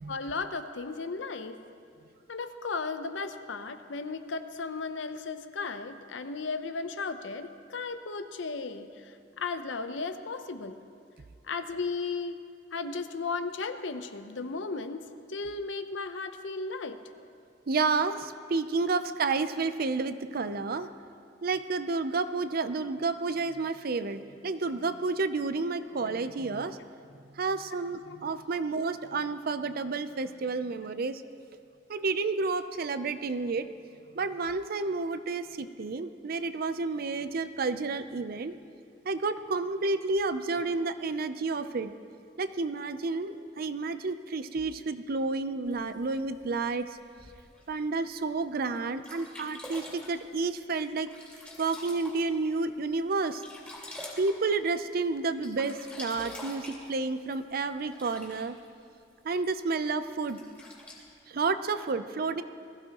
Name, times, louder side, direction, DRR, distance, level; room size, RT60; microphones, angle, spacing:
voice 1, 0.1-1.6 2.3-10.7 11.5-12.4 12.7-17.0 28.1-28.2 28.5-28.6 30.8-30.9, left 4 dB, 80° left, 9 dB, 0.7 m, -35 dB
voice 2, 17.7-20.9 21.4-26.8 27.3-31.2 31.9-33.7 34.1-38.6 39.0-41.9 42.4-46.9 47.7-51.1 51.6-53.4 54.2-58.5 59.2-60.4 61.3-62.4, right 3 dB, 55° right, 11 dB, 0.5 m, -30 dB
Sink (filling or washing), 45.7-47.6 48.3-48.4 48.7-48.8 49.0-52.5 52.9-55.0 55.3-58.7 59.4-59.5 60.2-61.0, left 1 dB, 10° left, 2.7 m, -46 dB
21.0 x 14.5 x 3.0 m, 2.3 s
head